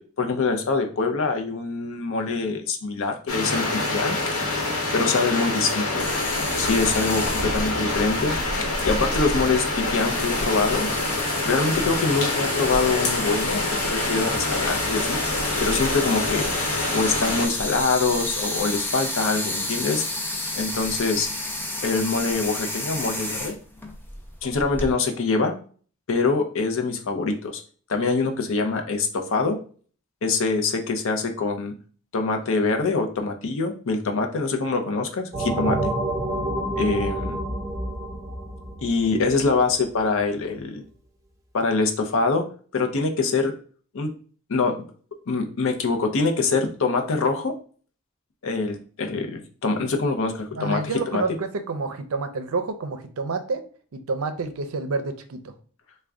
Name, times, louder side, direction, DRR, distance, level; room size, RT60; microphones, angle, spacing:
voice 1, 0.0-3.6 3.9-4.3 4.9-6.1 6.6-8.3 8.8-10.9 11.4-15.2 15.6-16.5 16.9-20.0 20.5-21.3 21.8-23.5 24.4-25.6 26.1-27.6 27.9-29.6 30.2-31.7 32.1-35.9 36.8-37.4 38.8-40.8 41.5-42.4 42.7-43.5 43.9-44.1 44.5-44.8 45.3-47.5 48.4-51.2, left 4 dB, 65° left, 5 dB, 0.6 m, -24 dB
sound 1, 3.3-17.5, left 2 dB, 85° left, 1.1 m, -26 dB
sound 2, 6.0-24.9, left 1 dB, 10° left, 0.5 m, -31 dB
sound 3, 35.3-39.7, right 1 dB, 15° right, 0.8 m, -28 dB
voice 2, 50.6-53.6 53.9-55.5, right 3 dB, 75° right, 9 dB, 0.5 m, -29 dB
3.4 x 2.2 x 3.6 m, 0.43 s
head